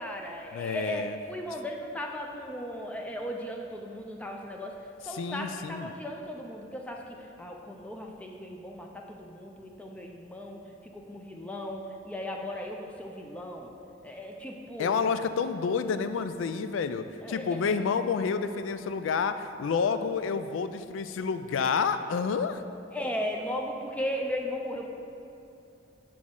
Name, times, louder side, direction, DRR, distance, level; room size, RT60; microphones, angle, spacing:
voice 1, 0.0-1.0 1.3-4.7 5.0-10.6 10.9-13.7 14.0-14.9 17.2-17.8 22.9-24.9, equal, 5° left, 1 dB, 0.4 m, -36 dB
voice 2, 0.5-1.2 5.2-5.9 14.8-22.6, left 5 dB, 85° left, 11 dB, 0.3 m, -29 dB
6.1 x 6.0 x 3.7 m, 2.6 s
head